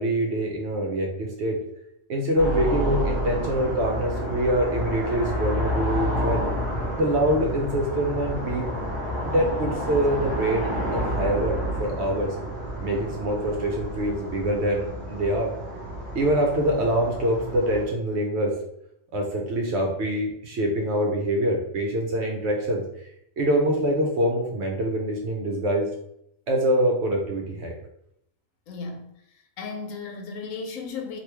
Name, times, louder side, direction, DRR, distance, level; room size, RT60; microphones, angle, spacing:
voice 1, 0.0-1.6 2.1-6.4 7.0-8.7 9.2-12.4 12.8-15.5 16.1-18.5 19.1-22.8 23.4-25.9 26.5-27.7, right 1 dB, 60° right, 1 dB, 0.8 m, -25 dB
sound 1, 2.4-17.8, equal, ahead, 1.0 m, -30 dB
voice 2, 28.7-29.1 29.6-31.2, left 4 dB, 80° left, 3 dB, 1.0 m, -35 dB
3.0 x 2.5 x 3.3 m, 0.74 s
omnidirectional pair, 1.4 m